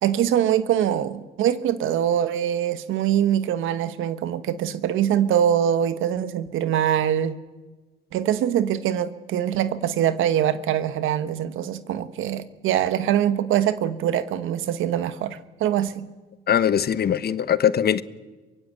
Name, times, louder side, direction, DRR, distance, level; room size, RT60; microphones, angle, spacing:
voice 1, 0.0-7.3 8.1-16.1, right 10 dB, 85° right, 1.3 m, -23 dB
voice 2, 16.5-18.0, left 9 dB, 55° left, 1.0 m, -21 dB
23.5 x 22.5 x 8.4 m
cardioid pair, 90°, 20 cm